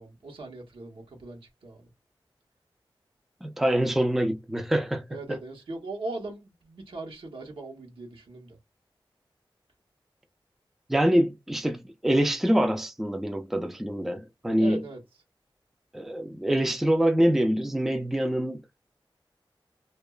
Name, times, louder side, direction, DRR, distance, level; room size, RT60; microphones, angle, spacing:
voice 1, 0.0-1.9 5.1-8.6 14.6-15.0, right 2 dB, 85° right, 0.9 m, -39 dB
voice 2, 3.4-5.1 10.9-14.8 15.9-18.6, equal, 5° right, 0.4 m, -25 dB
2.8 x 2.2 x 2.2 m
wide cardioid pair, 70°, 9 cm